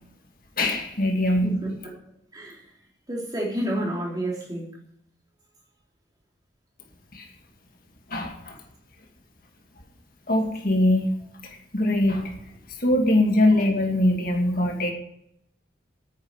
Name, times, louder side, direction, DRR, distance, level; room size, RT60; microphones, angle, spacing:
voice 1, 0.6-1.5 7.1-7.2 8.1-8.5 10.3-11.1 11.7-12.3 12.8-14.9, left 1 dB, 45° left, 2 dB, 2.3 m, -22 dB
voice 2, 1.4-1.7 2.3-2.6 3.1-4.7, right 1 dB, 20° right, -2 dB, 3.8 m, -29 dB
10.0 x 9.5 x 9.7 m, 0.74 s
head